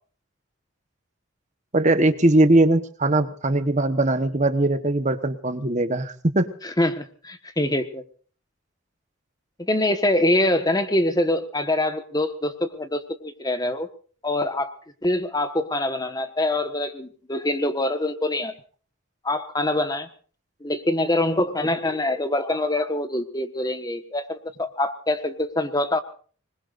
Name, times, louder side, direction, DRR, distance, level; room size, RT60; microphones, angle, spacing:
voice 1, 1.7-6.5, right 2 dB, 35° right, 10 dB, 1.1 m, -20 dB
voice 2, 6.6-8.0 9.6-13.9 14.2-14.7 15.0-18.5 19.2-20.1 20.6-26.0, left 1 dB, 20° left, 9 dB, 1.3 m, -24 dB
25.5 x 21.0 x 2.5 m, 0.43 s
head